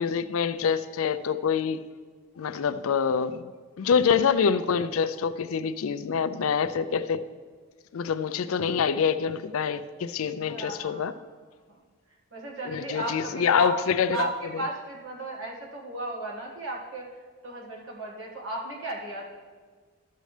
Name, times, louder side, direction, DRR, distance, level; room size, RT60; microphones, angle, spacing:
voice 1, 0.0-1.8 2.4-3.5 3.8-7.2 7.9-11.1 12.7-14.3, left 6 dB, 80° left, 13 dB, 0.4 m, -26 dB
voice 2, 10.4-11.0 11.7-11.8 12.3-13.8 14.1-17.1 17.4-19.3, right 2 dB, 65° right, -2 dB, 1.7 m, -35 dB
13.0 x 6.5 x 3.3 m, 1.5 s
head